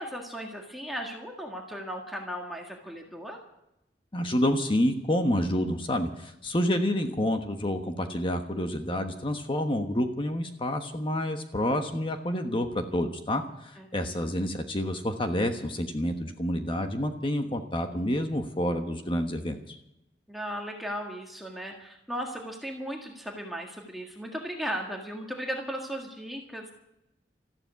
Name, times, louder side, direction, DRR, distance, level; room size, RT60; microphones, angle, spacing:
voice 1, 0.0-3.4 13.8-13.9 14.2-14.3 20.3-26.7, equal, ahead, 0 dB, 1.7 m, -36 dB
voice 2, 4.1-19.8, left 1 dB, 30° left, 6 dB, 1.2 m, -28 dB
14.0 x 12.0 x 8.2 m, 0.87 s
head